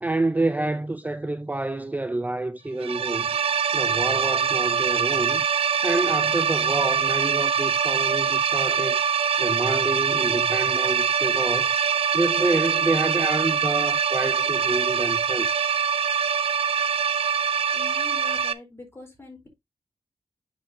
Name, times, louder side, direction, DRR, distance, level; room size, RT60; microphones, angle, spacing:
voice 1, 0.0-3.3 3.7-5.5 5.8-9.0 9.4-11.8 12.1-15.7, right 2 dB, 15° right, 0.5 m, -28 dB
sound 1, 2.8-18.5, right 7 dB, 75° right, 0.6 m, -23 dB
voice 2, 17.7-19.5, left 3 dB, 25° left, 3.9 m, -43 dB
9.2 x 5.9 x 2.7 m
cardioid pair, 75°, 10 cm